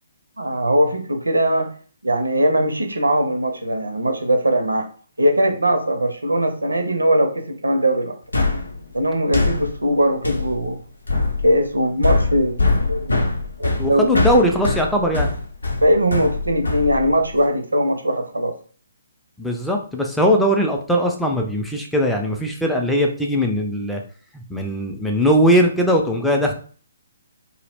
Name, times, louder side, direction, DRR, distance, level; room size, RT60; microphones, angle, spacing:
voice 1, 0.4-1.7 2.0-4.9 5.2-8.2 8.9-10.8 11.4-13.2 13.6-14.6 15.8-18.5, equal, 75° right, 4 dB, 0.5 m, -20 dB
sound 1, 8.3-17.5, left 3 dB, 75° left, 0.6 m, -23 dB
voice 2, 13.8-15.3 19.4-24.0 24.3-26.5, equal, ahead, 1 dB, 0.4 m, -20 dB
2.4 x 2.0 x 3.3 m, 0.42 s
figure-of-eight pair, 135°, 0 cm